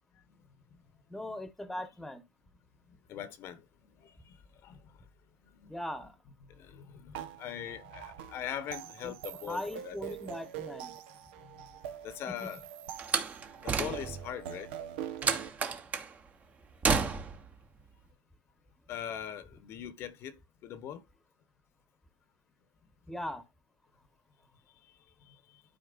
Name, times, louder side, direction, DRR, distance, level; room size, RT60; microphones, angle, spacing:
voice 1, 1.1-2.2 5.7-6.2 9.0-9.1 9.5-11.0 12.3-12.5 23.1-23.4, left 1 dB, 5° left, 1.1 m, -39 dB
voice 2, 2.9-3.7 4.0-5.0 5.5-5.7 6.5-10.0 11.4-11.7 12.0-12.6 13.6-14.7 18.9-21.0 24.8-24.9 25.2-25.6, left 9 dB, 50° left, 1.0 m, -42 dB
sound 1, 7.1-15.5, right 10 dB, 85° right, 1.2 m, -44 dB
Slam, 13.0-14.3 15.2-16.1 16.8-17.5, right 5 dB, 25° right, 1.1 m, -30 dB
12.5 x 4.3 x 2.5 m
supercardioid pair, 120°, 6 cm